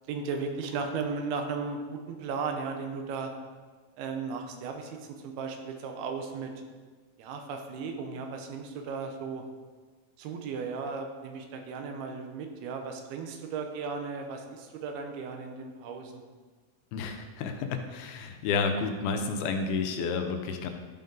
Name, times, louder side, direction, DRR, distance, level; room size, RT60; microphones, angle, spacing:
voice 1, 0.1-3.3 4.0-6.5 7.2-9.4 10.2-16.2, right 5 dB, 90° right, 4 dB, 2.9 m, -36 dB
voice 2, 16.9-20.7, left 4 dB, 80° left, 5 dB, 2.6 m, -30 dB
12.0 x 5.4 x 3.8 m, 1.5 s
omnidirectional pair, 4.3 m